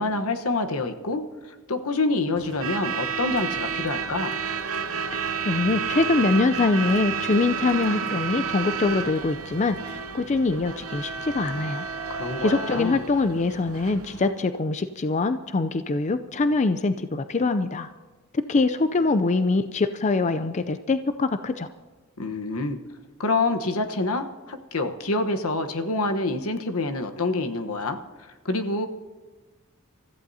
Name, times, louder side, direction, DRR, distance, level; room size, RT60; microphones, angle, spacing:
voice 1, 0.0-4.4 12.1-13.0 22.2-22.8 23.2-28.0 28.4-28.9, left 2 dB, 80° left, 7 dB, 1.1 m, -27 dB
Truck / Alarm, 2.4-14.3, right 6 dB, 75° right, 0.9 m, -31 dB
voice 2, 5.5-11.9 12.4-17.9 18.5-21.7, left 3 dB, 30° left, 10 dB, 0.4 m, -24 dB
28.5 x 14.5 x 2.8 m, 1.3 s
head